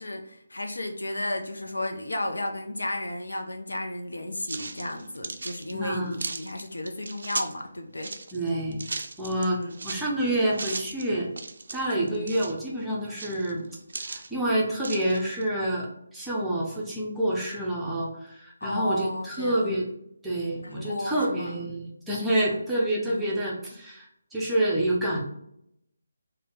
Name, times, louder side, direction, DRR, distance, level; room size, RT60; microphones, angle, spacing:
voice 1, 0.0-8.1 9.4-9.8 12.0-12.3 18.6-19.9 20.6-21.7 23.1-23.4, left 1 dB, 70° left, 3 dB, 0.6 m, -33 dB
sound 1, 4.5-7.6 8.0-10.1 10.5-11.0 11.4-12.6 13.0-14.3 14.8-15.4, right 3 dB, 55° right, 0.4 m, -36 dB
voice 2, 5.7-6.2 8.3-8.8 9.2-11.3 11.7-13.7 14.0-19.9 20.2-25.2, right 1 dB, 5° right, -6 dB, 0.7 m, -28 dB
3.3 x 2.3 x 3.8 m, 0.76 s
figure-of-eight pair, 150°, 0 cm